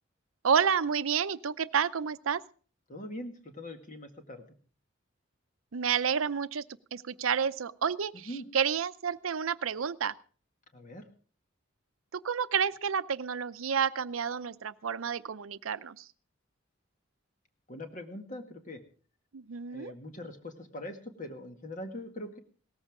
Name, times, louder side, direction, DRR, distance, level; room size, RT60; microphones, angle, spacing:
voice 1, 0.4-2.4 5.7-6.6 6.9-10.2 12.1-16.1 19.3-19.9, right 7 dB, 85° right, 14 dB, 0.6 m, -30 dB
voice 2, 2.9-4.4 8.1-8.5 10.7-11.1 17.7-18.8 19.7-22.4, left 1 dB, 40° left, 5 dB, 2.0 m, -42 dB
18.0 x 14.0 x 3.7 m, 0.42 s
head